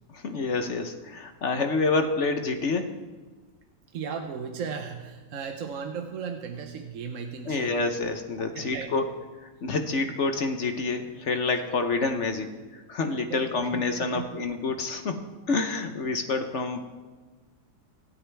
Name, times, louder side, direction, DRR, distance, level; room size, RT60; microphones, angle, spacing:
voice 1, 0.1-2.9 7.5-9.1 9.4-16.8, left 3 dB, 50° left, 7 dB, 1.1 m, -28 dB
voice 2, 3.9-7.8 8.4-9.0 13.2-14.3, right 6 dB, 55° right, 4 dB, 1.1 m, -36 dB
25.5 x 8.7 x 3.4 m, 1.3 s
omnidirectional pair, 1.8 m